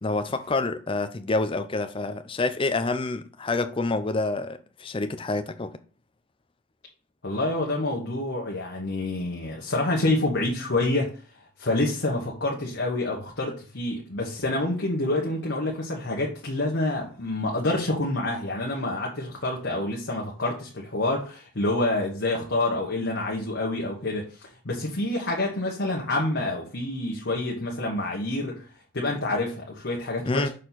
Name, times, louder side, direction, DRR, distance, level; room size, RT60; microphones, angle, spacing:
voice 1, 0.0-5.8 30.3-30.5, left 3 dB, 25° left, 0.5 m, -27 dB
voice 2, 7.2-11.1 11.6-28.7 28.9-30.5, left 2 dB, 50° left, 1.2 m, -27 dB
6.4 x 4.4 x 4.0 m
head